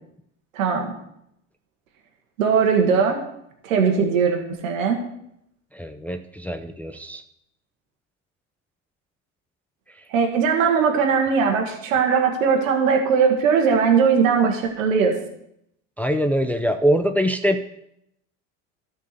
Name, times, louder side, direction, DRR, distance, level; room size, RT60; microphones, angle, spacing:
voice 1, 0.5-0.9 2.4-3.2 3.6-5.0 10.1-15.1, right 6 dB, 80° right, 3 dB, 1.6 m, -19 dB
voice 2, 5.7-7.2 16.0-17.7, equal, 5° left, 6 dB, 0.6 m, -23 dB
12.0 x 4.6 x 6.7 m, 0.77 s
hypercardioid pair, 80°, 39 cm